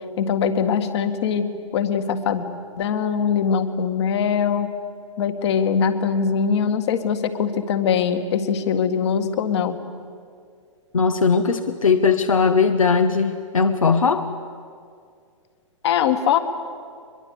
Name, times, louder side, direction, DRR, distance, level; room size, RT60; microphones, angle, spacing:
voice 1, 0.2-2.5 2.8-4.7 5.2-9.8 15.8-16.4, left 7 dB, 55° left, 8 dB, 2.0 m, -22 dB
voice 2, 10.9-14.3, left 5 dB, 85° left, 6 dB, 1.2 m, -19 dB
23.5 x 22.0 x 8.3 m, 2.2 s
figure-of-eight pair, 115°, 17 cm